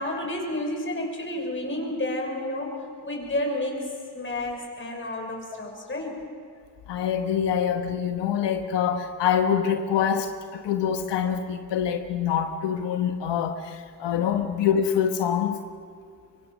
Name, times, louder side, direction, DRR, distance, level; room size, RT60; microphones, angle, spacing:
voice 1, 0.0-2.7 3.0-3.8 4.1-6.2, left 1 dB, 30° left, 1 dB, 5.8 m, -30 dB
voice 2, 6.9-15.6, left 8 dB, 90° left, 6 dB, 1.2 m, -25 dB
24.5 x 24.0 x 6.2 m, 2.3 s
cardioid pair, 95°, 41 cm